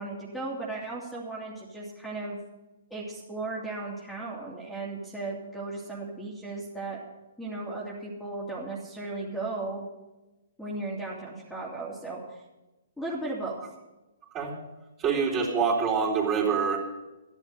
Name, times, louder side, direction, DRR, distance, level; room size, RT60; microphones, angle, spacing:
voice 1, 0.0-2.4 2.9-7.0 7.4-9.8 10.6-12.4 13.0-13.7, right 2 dB, ahead, -5 dB, 2.5 m, -36 dB
voice 2, 15.0-16.8, right 6 dB, 25° right, -2 dB, 3.9 m, -25 dB
13.5 x 11.0 x 6.6 m, 1.1 s
hypercardioid pair, 130°, 0 cm